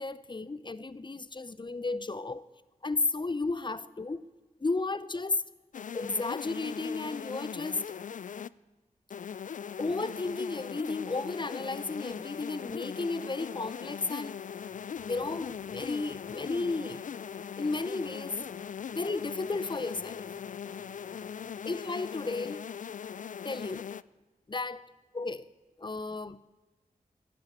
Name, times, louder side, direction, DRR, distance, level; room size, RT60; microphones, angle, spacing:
voice 1, 0.0-2.5 2.8-4.2 4.6-5.4 5.9-8.0 9.8-14.4 15.0-17.0 17.6-18.5 18.9-20.3 21.7-22.6 23.4-23.9 24.5-24.9 25.1-25.5 25.8-26.4, left 3 dB, 30° left, 0.7 m, -33 dB
sound 1, 5.7-8.5 9.1-24.0, left 7 dB, 55° left, 0.4 m, -40 dB
sound 2, 14.4-21.8, equal, 10° left, 4.1 m, -60 dB
12.0 x 9.5 x 8.2 m
cardioid pair, 40°, 15 cm